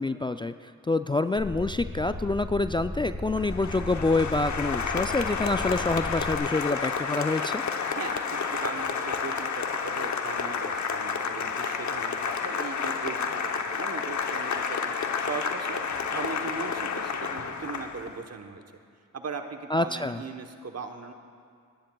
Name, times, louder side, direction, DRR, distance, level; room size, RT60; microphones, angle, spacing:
voice 1, 0.0-7.6 19.7-20.2, left 2 dB, 15° left, 9 dB, 0.4 m, -27 dB
sound 1, 1.4-6.4, equal, 30° right, 3.4 m, -37 dB
Applause, 3.4-18.2, left 6 dB, 65° left, 0.9 m, -30 dB
voice 2, 7.9-14.9 15.2-15.8 16.1-18.6 19.1-21.1, right 5 dB, 55° right, 6 dB, 1.1 m, -39 dB
29.5 x 10.0 x 2.3 m, 2.1 s
cardioid pair, 50°, 32 cm